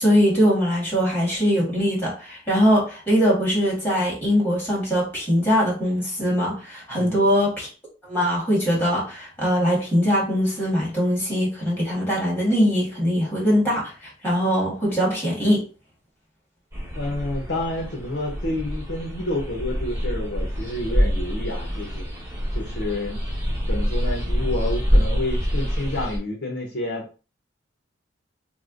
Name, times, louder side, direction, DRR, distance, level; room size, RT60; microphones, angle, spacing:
voice 1, 0.0-7.7 8.1-15.6, equal, 10° left, 1.6 m, -21 dB
voice 2, 6.9-7.3 16.9-22.0 22.5-23.2 23.7-27.0, left 1 dB, 60° left, 0.9 m, -29 dB
sound 1, 16.7-26.2, equal, 15° right, 1.1 m, -26 dB
3.2 x 2.1 x 3.7 m
head